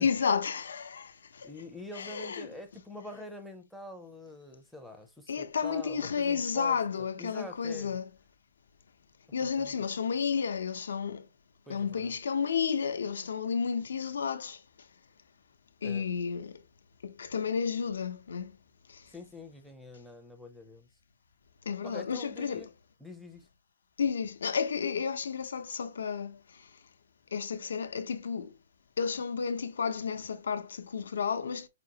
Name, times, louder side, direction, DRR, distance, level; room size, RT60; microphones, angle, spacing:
voice 1, 0.0-1.5 1.9-2.5 5.3-8.0 9.3-11.3 11.7-14.6 15.8-16.6 17.0-18.5 18.9-19.0 21.7-22.7 24.0-26.7 27.3-28.5 29.0-31.7, left 6 dB, 80° left, 0.7 m, -32 dB
voice 2, 1.4-6.8 7.2-8.0 9.6-9.7 11.7-12.2 15.8-16.0 19.1-20.9 21.8-22.7 23.0-23.5, left 2 dB, ahead, 0.5 m, -45 dB
5.2 x 2.8 x 2.8 m
hypercardioid pair, 175°, 0 cm